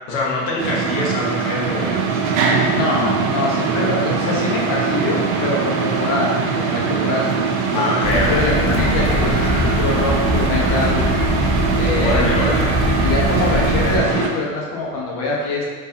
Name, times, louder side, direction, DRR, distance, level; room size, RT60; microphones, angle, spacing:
voice 1, 0.1-2.2 7.7-8.3 11.9-12.8, left 2 dB, 70° left, -4 dB, 1.0 m, -23 dB
sound 1, 0.6-14.3, right 5 dB, 85° right, 0.6 m, -22 dB
voice 2, 2.7-8.0 8.3-11.0 11.7-12.3 13.0-15.7, left 2 dB, 50° left, -4 dB, 1.2 m, -24 dB
sound 2, 8.0-14.0, left 1 dB, 15° left, 0.6 m, -21 dB
3.7 x 2.7 x 2.8 m, 1.5 s
hypercardioid pair, 85°, 41 cm